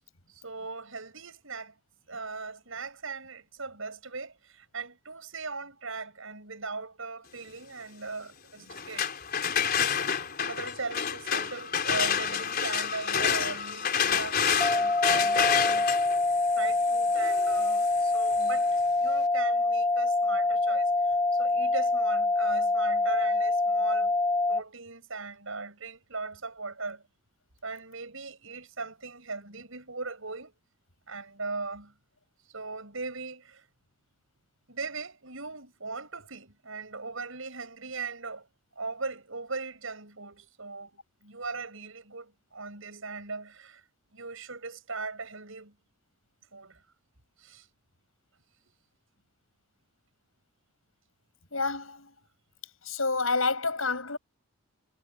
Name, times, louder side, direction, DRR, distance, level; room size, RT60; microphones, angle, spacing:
voice 1, 0.3-1.8 2.1-9.1 10.4-15.9 16.6-18.7 19.0-24.1 24.5-27.0 27.6-30.5 31.1-31.9 32.5-33.7 34.7-38.5 38.8-43.8 44.1-45.8 46.5-46.8 47.4-47.7, right 4 dB, 70° right, 6.1 m, -39 dB
sound 1, 8.7-18.5, left 7 dB, 45° left, 4.8 m, -29 dB
sound 2, 14.6-24.6, left 2 dB, 10° left, 1.0 m, -25 dB
voice 2, 51.5-52.1 52.8-54.2, left 3 dB, 75° left, 6.9 m, -28 dB
head